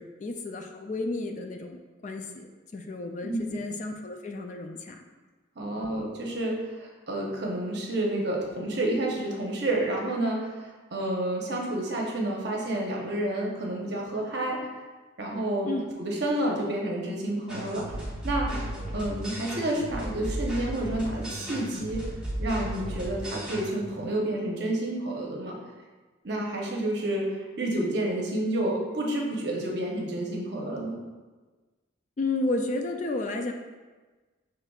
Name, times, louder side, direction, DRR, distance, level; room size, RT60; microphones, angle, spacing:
voice 1, 0.0-5.0 5.8-5.9 15.7-16.0 32.2-33.5, left 2 dB, 40° left, 4 dB, 0.3 m, -32 dB
voice 2, 5.6-14.6 15.2-15.7 16.0-18.0 18.2-18.7 18.9-22.0 22.4-25.6 26.2-27.3 27.6-31.0, right 1 dB, 55° right, -1 dB, 0.8 m, -29 dB
sound 1, 17.5-23.7, right 1 dB, 5° right, 0.9 m, -34 dB
6.6 x 3.3 x 2.3 m, 1.3 s
head